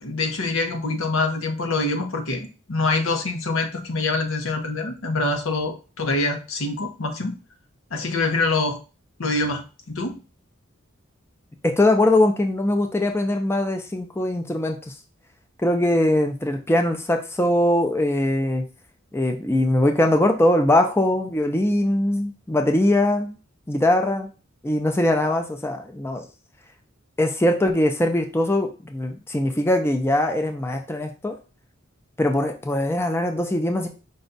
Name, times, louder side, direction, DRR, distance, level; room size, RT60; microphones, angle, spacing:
voice 1, 0.0-7.4 7.9-8.8 9.2-9.6 9.9-10.2, left 3 dB, 85° left, 4 dB, 0.9 m, -25 dB
voice 2, 11.6-14.8 15.6-18.6 19.1-23.3 23.7-24.3 24.6-26.2 27.2-31.4 32.2-33.9, left 1 dB, 10° left, 4 dB, 0.5 m, -21 dB
5.1 x 2.3 x 3.9 m, 0.33 s
head